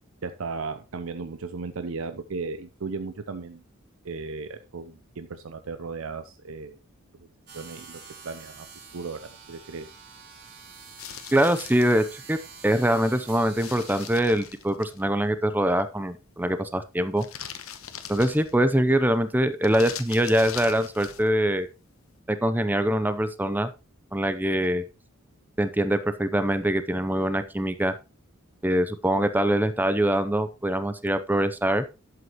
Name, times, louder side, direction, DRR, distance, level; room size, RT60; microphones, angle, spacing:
voice 1, 0.2-3.6 4.0-6.8 7.2-7.3 7.5-8.7 8.9-9.9, right 4 dB, 80° right, 9 dB, 0.7 m, -36 dB
sound 1, 7.5-14.1, right 5 dB, 55° right, 3.8 m, -47 dB
sound 2, 11.0-11.9 13.6-15.0 17.2-18.7 19.6-21.3, left 9 dB, 85° left, 1.1 m, -41 dB
voice 2, 11.3-12.4 12.6-17.3 18.1-21.7 22.3-23.7 24.1-24.8 25.6-27.9 28.6-31.9, right 1 dB, 10° right, 11 dB, 0.6 m, -23 dB
11.0 x 8.0 x 3.0 m, 0.28 s
head